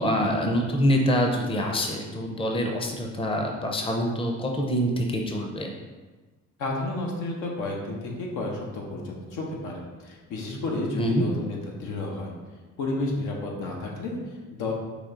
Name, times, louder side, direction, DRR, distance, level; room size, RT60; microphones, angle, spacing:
voice 1, 0.0-5.7 11.0-11.3, equal, 20° left, 1 dB, 0.6 m, -25 dB
voice 2, 6.6-12.3 12.8-14.7, left 2 dB, 85° left, -1 dB, 0.9 m, -31 dB
4.9 x 2.3 x 3.8 m, 1.3 s
cardioid pair, 90°, 30 cm